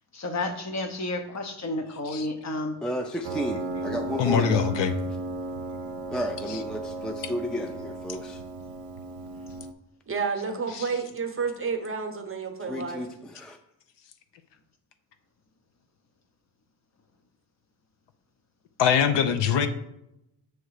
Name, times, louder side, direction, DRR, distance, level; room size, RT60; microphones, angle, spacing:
voice 1, 0.1-2.8 10.3-10.6, left 2 dB, 40° left, 6 dB, 0.8 m, -31 dB
voice 2, 2.8-4.7 6.1-8.4 12.7-13.6, equal, ahead, 4 dB, 0.4 m, -32 dB
Piano, 3.2-9.7, right 2 dB, 70° right, 0.7 m, -35 dB
voice 3, 4.2-4.9 10.7-10.9 18.8-19.7, left 8 dB, 75° left, 9 dB, 0.7 m, -23 dB
voice 4, 10.1-13.0, right 5 dB, 30° right, 5 dB, 0.8 m, -30 dB
6.5 x 3.1 x 4.8 m, 0.83 s
cardioid pair, 100°, 43 cm